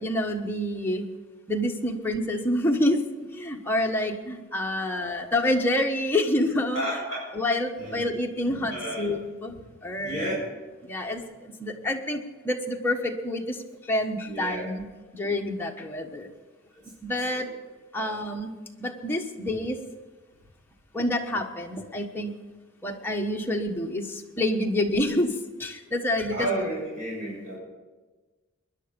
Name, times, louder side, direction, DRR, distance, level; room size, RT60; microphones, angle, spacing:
voice 1, 0.0-1.1 1.5-7.0 7.3-9.5 9.8-10.4 10.8-14.8 15.1-16.3 17.0-17.5 17.9-18.5 18.8-19.8 20.9-22.3 22.8-26.5, left 1 dB, 10° left, 1 dB, 1.2 m, -28 dB
voice 2, 4.8-5.1 6.7-7.2 7.8-8.0 8.4-9.1 10.0-10.3 14.2-14.7 16.7-16.8 17.3-17.5 17.9-18.1 26.3-27.6, right 1 dB, 40° right, -5 dB, 6.7 m, -32 dB
20.5 x 10.5 x 5.3 m, 1.3 s
head